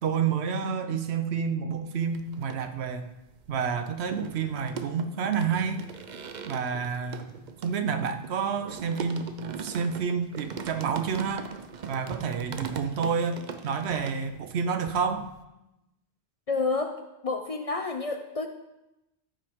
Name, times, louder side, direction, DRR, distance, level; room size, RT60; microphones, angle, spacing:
voice 1, 0.0-3.1 3.5-5.9 6.4-7.3 7.6-9.3 9.6-11.5 11.9-15.3, right 6 dB, 80° right, 9 dB, 1.0 m, -29 dB
sound 1, 2.0-3.0 3.3-14.6 14.9-15.4, right 6 dB, 50° right, 0.6 m, -40 dB
voice 2, 16.5-18.5, left 3 dB, 45° left, 6 dB, 0.5 m, -30 dB
13.5 x 5.5 x 3.6 m, 0.93 s
omnidirectional pair, 1.1 m